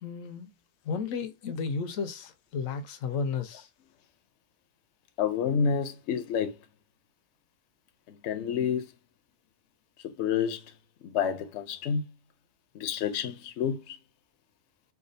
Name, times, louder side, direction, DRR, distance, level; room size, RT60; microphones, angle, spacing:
voice 1, 0.0-0.5 0.9-3.7, left 5 dB, 85° left, 1.1 m, -33 dB
voice 2, 5.2-6.6 8.1-8.9 10.0-10.7 11.0-12.0 12.7-14.0, left 7 dB, 65° left, 0.8 m, -29 dB
4.8 x 2.4 x 2.6 m
omnidirectional pair, 1.3 m